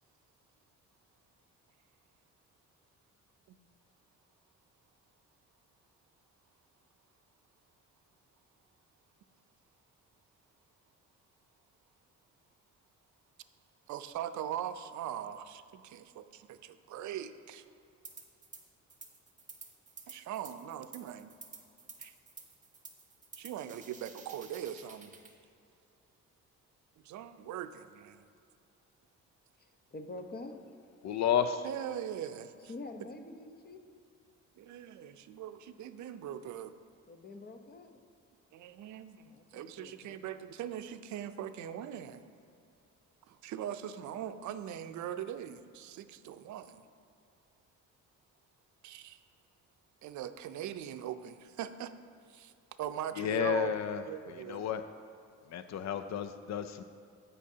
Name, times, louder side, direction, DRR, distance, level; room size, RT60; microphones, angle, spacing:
voice 1, 13.9-17.6 20.1-21.3 22.0-22.1 23.4-25.1 27.0-28.2 31.6-32.5 34.6-36.7 38.5-42.2 43.3-46.8 48.8-49.2 50.0-51.9 52.3-52.5 52.8-53.7 54.1-54.6, right 10 dB, 70° right, 11 dB, 0.5 m, -41 dB
sound 1, 18.0-18.6 18.9-25.3, right 4 dB, 25° right, 1.1 m, -51 dB
voice 2, 29.6-30.6 32.7-33.8 37.1-38.0 39.3-40.2, left 2 dB, 30° left, 6 dB, 0.9 m, -46 dB
voice 3, 31.0-31.7 53.2-54.8 55.5-56.8, left 8 dB, 65° left, 10 dB, 0.5 m, -32 dB
15.0 x 5.6 x 2.8 m, 2.5 s
cardioid pair, 90°, 30 cm